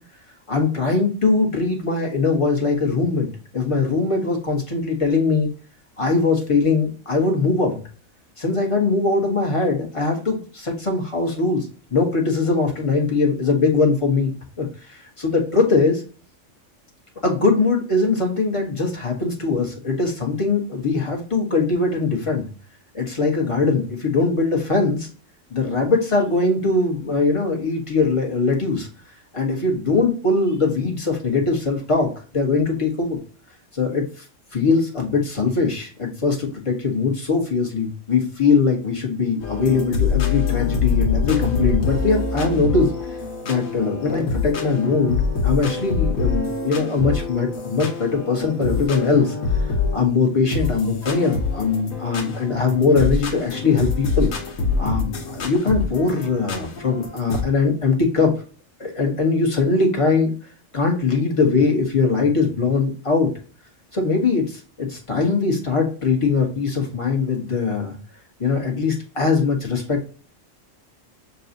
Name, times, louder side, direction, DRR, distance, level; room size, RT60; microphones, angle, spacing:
voice 1, 0.5-5.5 6.0-7.8 8.4-16.0 17.2-22.5 22.9-25.1 25.5-28.9 29.3-33.2 33.7-34.2 34.5-43.1 43.4-49.3 49.6-54.3 54.8-58.3 58.8-60.3 60.7-63.3 63.9-68.0 68.4-70.1, left 4 dB, 25° left, 0 dB, 1.1 m, -21 dB
sound 1, 39.4-50.2 50.5-57.4, left 4 dB, 85° left, 1.3 m, -25 dB
6.9 x 2.3 x 2.6 m, 0.38 s
omnidirectional pair, 1.3 m